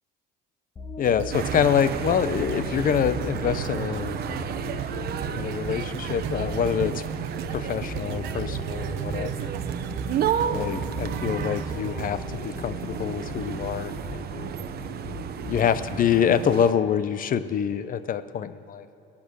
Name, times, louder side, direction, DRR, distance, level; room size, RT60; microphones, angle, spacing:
sound 1, 0.8-15.9, left 4 dB, 25° left, 1.1 m, -40 dB
voice 1, 1.0-4.2 5.3-7.0 7.5-9.5 10.5-14.5 15.5-18.9, left 8 dB, 45° left, 14 dB, 0.7 m, -26 dB
sound 2, 1.0-13.2 13.8-13.9, right 14 dB, 75° right, 0.5 m, -40 dB
sound 3, 1.3-16.7, right 8 dB, 50° right, 1.0 m, -32 dB
20.5 x 8.7 x 6.3 m, 2.9 s
supercardioid pair, 95°, 20 cm